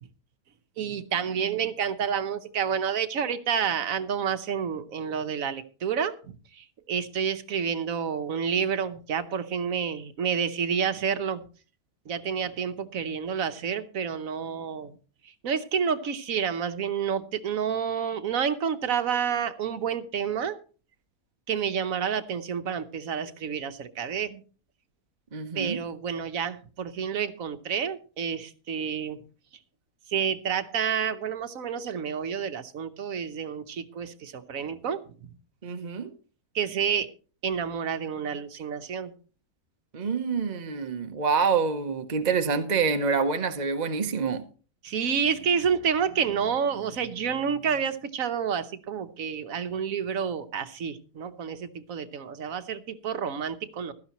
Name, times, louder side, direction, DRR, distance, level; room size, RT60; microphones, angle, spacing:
voice 1, 0.8-11.4 12.1-15.0 15.4-20.6 21.5-24.4 25.5-29.2 30.1-35.1 36.5-37.1 37.4-39.1 44.8-53.9, right 7 dB, 65° right, 1.3 m, -29 dB
voice 2, 25.3-25.8 35.6-36.1 39.9-44.5, right 5 dB, 35° right, 0.9 m, -27 dB
15.5 x 13.0 x 3.0 m
omnidirectional pair, 1.6 m